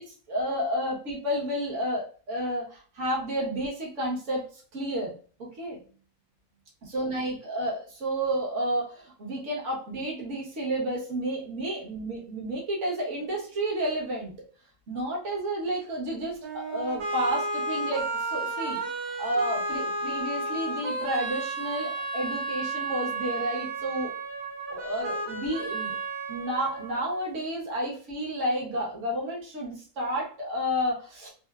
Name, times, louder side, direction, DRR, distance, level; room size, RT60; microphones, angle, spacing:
voice 1, 0.0-5.8 6.8-14.3 14.9-18.8 19.2-24.1 24.7-26.0 26.3-31.3, right 1 dB, 55° right, -3 dB, 1.3 m, -31 dB
sound 1, 16.4-27.4, right 2 dB, 85° right, 1.4 m, -33 dB
3.4 x 2.5 x 2.3 m, 0.40 s
omnidirectional pair, 1.6 m